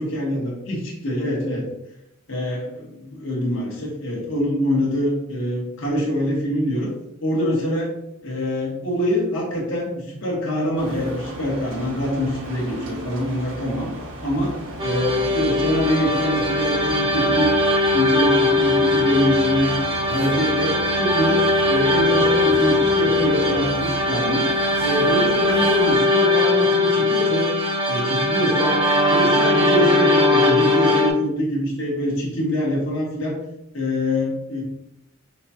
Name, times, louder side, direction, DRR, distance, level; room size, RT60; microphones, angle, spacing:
voice 1, 0.0-1.7 2.3-6.9 7.2-7.9 8.2-13.9 14.2-14.5 14.8-17.5 17.9-19.8 20.1-24.5 24.8-27.5 27.9-28.8 29.1-33.4 33.7-34.6, equal, 60° left, -4 dB, 1.4 m, -24 dB
sound 1, 10.8-26.0, right 1 dB, 60° right, 0.8 m, -35 dB
sound 2, 14.8-31.1, left 2 dB, 25° right, 0.6 m, -20 dB
5.6 x 2.3 x 2.9 m, 0.83 s
head